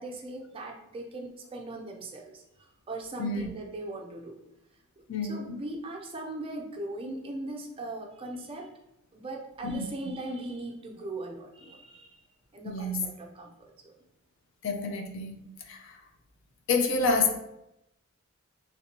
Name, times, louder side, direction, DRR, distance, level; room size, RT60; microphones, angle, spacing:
voice 1, 0.0-4.4 5.2-8.7 9.1-12.2 12.5-13.5 13.8-13.9, right 2 dB, 25° right, 0.4 m, -39 dB
voice 2, 5.1-5.6 9.6-10.1 12.6-13.1 14.6-16.0 16.7-17.4, left 3 dB, 60° left, 0.4 m, -29 dB
3.2 x 2.6 x 2.9 m
head